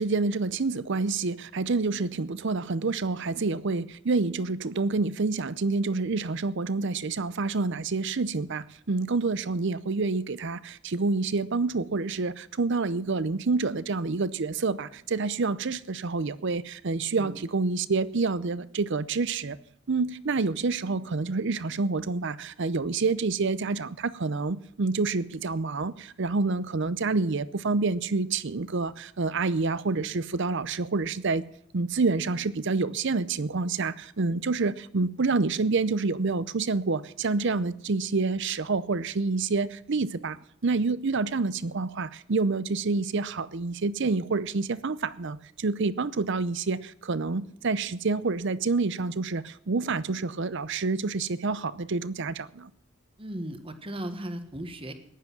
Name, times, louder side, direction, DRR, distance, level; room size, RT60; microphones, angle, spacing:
voice 1, 0.0-19.6 19.9-31.4 31.7-40.4 40.6-52.7, right 3 dB, 55° right, 0.6 m, -28 dB
voice 2, 53.2-54.9, right 1 dB, 25° right, 1.3 m, -36 dB
15.0 x 10.5 x 6.0 m
head